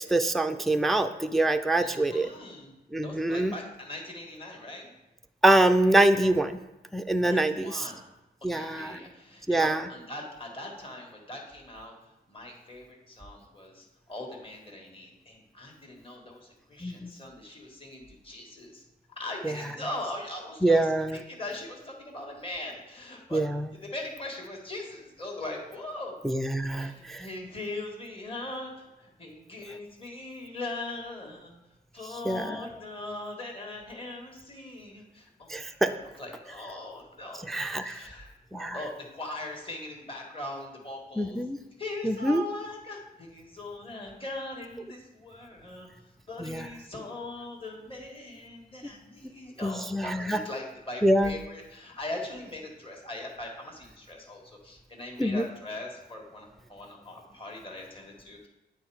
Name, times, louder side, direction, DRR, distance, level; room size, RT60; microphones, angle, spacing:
voice 1, 0.0-2.3 2.9-3.5 5.4-6.6 6.9-7.9 8.4-9.0 9.5-9.9 16.8-17.1 19.4-19.5 20.6-21.2 23.3-23.7 26.2-27.2 32.3-32.6 35.5-35.9 37.5-38.0 38.5-38.8 41.2-41.6 42.0-42.4 46.4-46.7 49.2-49.3 49.6-50.4 51.0-51.3 55.2-55.4, right 1 dB, ahead, 7 dB, 0.4 m, -25 dB
voice 2, 1.8-2.7 3.0-4.9 7.2-8.0 8.5-18.8 19.2-23.4 23.7-26.2 26.8-31.5 31.9-38.3 38.7-41.4 41.8-45.9 46.3-58.5, left 2 dB, 30° left, 0 dB, 1.6 m, -40 dB
8.6 x 3.5 x 4.7 m, 0.99 s
cardioid pair, 65°, 18 cm